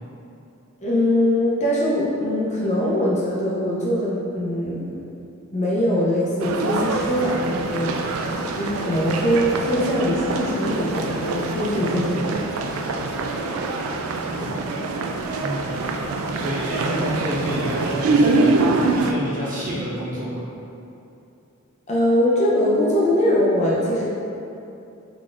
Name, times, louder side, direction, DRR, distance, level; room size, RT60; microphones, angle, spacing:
voice 1, 0.8-5.1 5.5-12.7 14.4-14.5 21.9-24.1, left 1 dB, 30° left, -6 dB, 0.5 m, -22 dB
sound 1, 6.4-19.1, right 3 dB, 70° right, 0.3 m, -24 dB
voice 2, 11.9-12.7 14.3-14.8 15.4-15.8 16.3-20.4, equal, 40° right, -8 dB, 0.9 m, -30 dB
3.9 x 3.3 x 2.5 m, 2.7 s
head